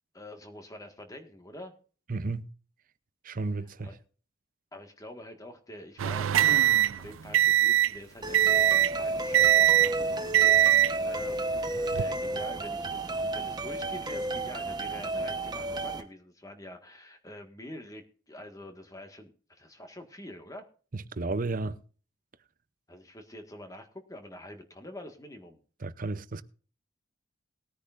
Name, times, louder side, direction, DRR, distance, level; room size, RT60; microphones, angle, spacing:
voice 1, 0.1-1.7 3.8-3.9 4.7-20.6 22.9-25.6, left 1 dB, 15° left, 1.7 m, -46 dB
voice 2, 2.1-2.5 3.2-3.9 20.9-21.8 25.8-26.4, right 3 dB, 45° right, 0.7 m, -33 dB
sound 1, 6.0-8.0 8.3-9.0 9.3-10.0 10.3-11.0 11.8-12.0, right 13 dB, 85° right, 0.4 m, -22 dB
sound 2, 8.2-16.0, right 2 dB, 20° right, 1.1 m, -32 dB
20.0 x 10.0 x 2.6 m
head